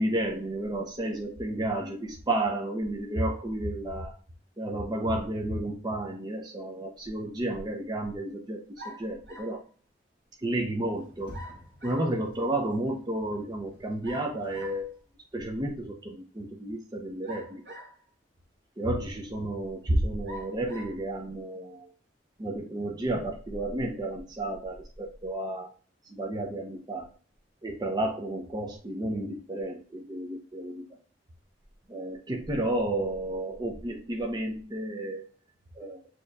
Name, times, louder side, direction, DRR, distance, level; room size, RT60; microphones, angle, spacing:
voice 1, 0.0-4.1 4.6-9.6 10.4-11.3 11.8-14.9 15.3-17.6 18.8-21.9 22.4-25.7 26.0-27.1 27.6-30.7 31.9-35.3 35.7-36.1, right 1 dB, 25° right, 1 dB, 0.5 m, -31 dB
sound 1, 8.8-9.6 11.3-12.1 14.0-14.9 17.2-18.1 18.8-18.9 20.3-21.0, equal, 80° right, 1.7 m, -45 dB
Sliding door, 10.8-15.3, equal, 25° left, 1.8 m, -50 dB
6.5 x 2.9 x 2.3 m, 0.40 s
head